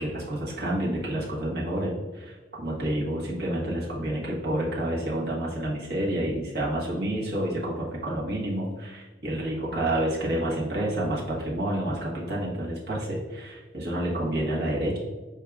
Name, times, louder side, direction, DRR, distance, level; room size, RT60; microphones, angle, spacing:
voice 1, 0.0-15.0, right 1 dB, 60° right, -5 dB, 1.2 m, -29 dB
4.7 x 4.5 x 2.3 m, 1.3 s
head